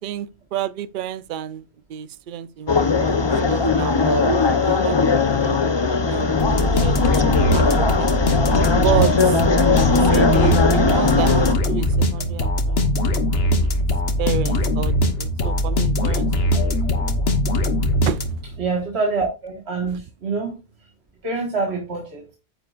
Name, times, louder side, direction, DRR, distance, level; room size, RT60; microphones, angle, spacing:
voice 1, 0.0-1.6 1.9-3.2 3.5-5.6 6.1-8.3 8.8-9.4 9.9-13.0 13.5-13.7 14.2-16.7 18.0-18.2 19.8-19.9, right 10 dB, 55° right, 0.7 m, -30 dB
sound 1, 2.7-11.5, left 4 dB, 30° left, 0.7 m, -19 dB
sound 2, 6.4-18.6, left 1 dB, 65° left, 1.3 m, -21 dB
voice 2, 18.6-20.6 21.2-22.3, right 4 dB, 75° right, 1.9 m, -25 dB
9.3 x 7.9 x 2.5 m
omnidirectional pair, 1.1 m